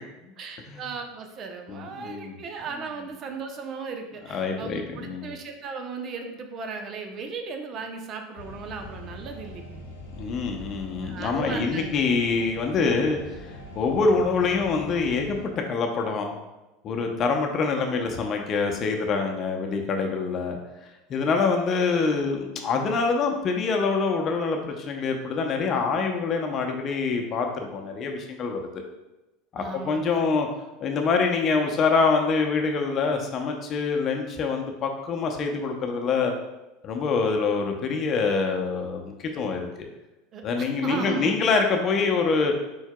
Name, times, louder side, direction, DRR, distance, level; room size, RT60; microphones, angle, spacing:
voice 1, 0.4-9.8 11.0-12.1 21.4-22.0 29.6-30.3 40.3-41.4, right 5 dB, 45° right, 4 dB, 0.7 m, -36 dB
voice 2, 1.7-2.3 4.3-5.3 10.2-13.2 13.7-16.4 16.8-20.6 21.1-28.8 29.5-30.5 30.8-36.3 36.8-39.9 40.4-42.5, left 4 dB, 40° left, 3 dB, 0.7 m, -25 dB
sound 1, 8.4-15.5, left 1 dB, 85° left, 0.8 m, -42 dB
4.6 x 4.5 x 2.2 m, 1.0 s
hypercardioid pair, 85°, 0 cm